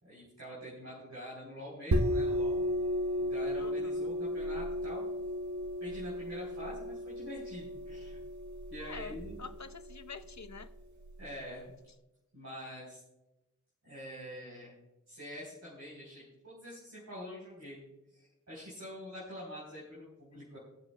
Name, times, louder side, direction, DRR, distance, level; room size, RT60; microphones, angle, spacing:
voice 1, 0.0-2.7 3.2-5.1 5.8-8.2 8.7-9.4 10.9-11.7 12.3-13.0 13.8-14.7 15.1-17.8 18.1-20.6, equal, 60° right, -6 dB, 3.6 m, -46 dB
sound 1, 1.9-11.3, equal, 80° right, 0.9 m, -34 dB
voice 2, 3.6-4.1 8.8-10.7, left 5 dB, 70° left, 11 dB, 0.7 m, -47 dB
21.0 x 7.5 x 2.2 m, 0.94 s
wide cardioid pair, 40°, 30 cm